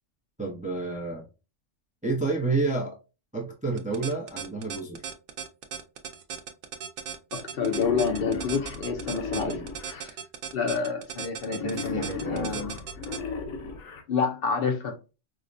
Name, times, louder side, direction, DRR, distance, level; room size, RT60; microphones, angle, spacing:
voice 1, 0.4-1.3 2.0-2.9 3.3-5.0 9.3-9.7 11.5-12.7, right 3 dB, 10° right, 0.5 m, -30 dB
sound 1, 3.8-13.2, right 8 dB, 90° right, 0.9 m, -36 dB
voice 2, 7.3-9.6 9.9-10.1 10.5-12.8 14.1-15.0, left 5 dB, 60° left, 0.7 m, -28 dB
Wild animals, 7.5-10.0 11.5-14.0, left 4 dB, 75° left, 1.1 m, -35 dB
4.8 x 2.1 x 2.5 m
omnidirectional pair, 1.2 m